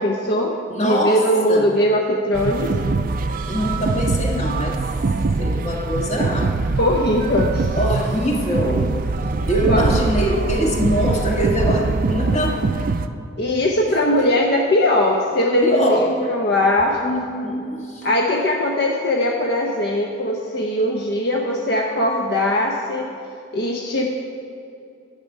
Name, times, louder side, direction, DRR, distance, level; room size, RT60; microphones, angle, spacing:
voice 1, 0.0-2.7 6.8-7.7 9.7-9.8 13.4-17.0 18.0-23.1 23.5-24.1, left 1 dB, 60° left, 0 dB, 0.8 m, -20 dB
voice 2, 0.7-1.7 3.5-4.8 5.4-6.5 7.8-8.9 9.5-12.6 15.6-16.1 17.0-18.1, equal, 35° left, -1 dB, 1.5 m, -23 dB
sound 1, 2.3-13.1, right 3 dB, 45° right, 0.4 m, -23 dB
11.0 x 7.4 x 5.5 m, 2.5 s
head